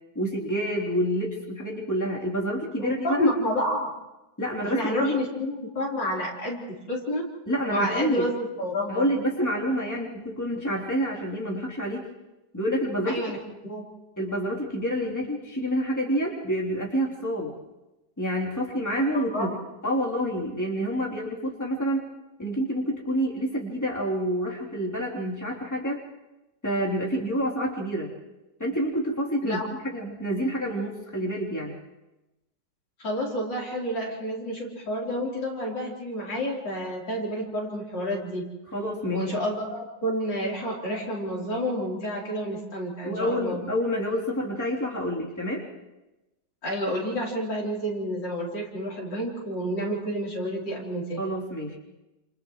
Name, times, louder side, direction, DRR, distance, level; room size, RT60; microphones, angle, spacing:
voice 1, 0.2-3.3 4.4-5.1 7.5-8.3 8.9-12.0 12.5-13.2 14.2-17.5 18.2-19.6 19.8-22.1 22.4-26.0 26.6-28.1 28.6-31.8 38.7-39.3 43.0-45.6 51.2-51.8, equal, 10° left, -3 dB, 3.4 m, -28 dB
voice 2, 2.8-3.9 4.6-7.3 7.7-9.0 13.1-13.4 13.6-13.8 19.1-19.5 29.4-29.6 33.0-38.5 39.1-43.6 46.6-51.2, equal, 90° left, -3 dB, 4.7 m, -29 dB
30.0 x 27.5 x 3.2 m, 1.0 s
omnidirectional pair, 1.9 m